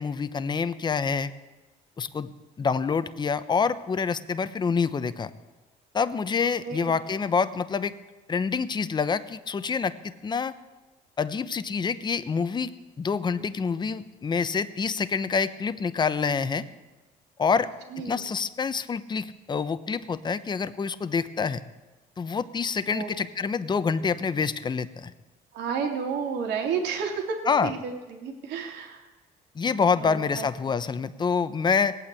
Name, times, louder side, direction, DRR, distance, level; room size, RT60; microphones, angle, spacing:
voice 1, 0.0-1.3 2.0-2.3 2.6-5.3 5.9-7.9 8.3-9.9 10.2-10.5 11.2-12.7 13.0-16.6 17.4-17.7 18.0-21.6 22.2-25.1 27.5-27.7 29.5-32.0, left 5 dB, 25° left, 13 dB, 0.8 m, -26 dB
voice 2, 6.4-7.0 17.9-18.3 22.9-23.1 25.5-27.4 27.6-29.0 29.9-30.5, right 6 dB, 80° right, 3 dB, 2.8 m, -31 dB
18.0 x 8.8 x 8.3 m, 1.2 s
cardioid pair, 110°, 17 cm